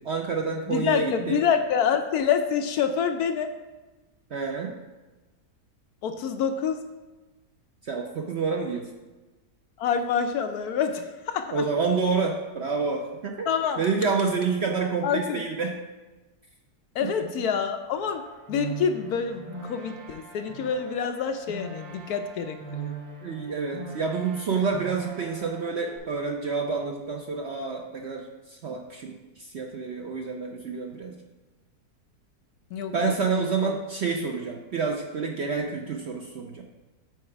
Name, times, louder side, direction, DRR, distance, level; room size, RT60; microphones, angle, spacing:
voice 1, 0.0-1.4 4.3-4.7 7.8-8.9 11.5-13.5 13.8-15.7 17.2-17.3 23.2-31.2 32.9-36.6, right 4 dB, 60° right, 1 dB, 0.7 m, -28 dB
voice 2, 0.7-3.5 6.0-6.8 9.8-11.6 13.5-13.8 15.0-15.4 16.9-23.0 32.7-33.1 33.4-33.5, left 7 dB, 70° left, 7 dB, 1.0 m, -27 dB
sound 1, 18.0-26.0, right 5 dB, 90° right, 1.8 m, -41 dB
8.0 x 4.7 x 4.4 m, 1.2 s
omnidirectional pair, 1.8 m